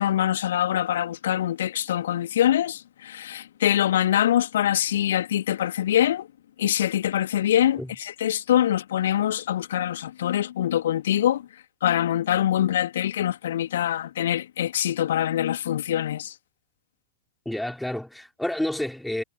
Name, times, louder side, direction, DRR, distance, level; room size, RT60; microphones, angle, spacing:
voice 1, 0.0-6.3 6.6-16.3, left 11 dB, 60° left, 3.4 m, -24 dB
voice 2, 17.5-19.2, left 1 dB, 5° left, 5.6 m, -29 dB
figure-of-eight pair, 90°, 0 cm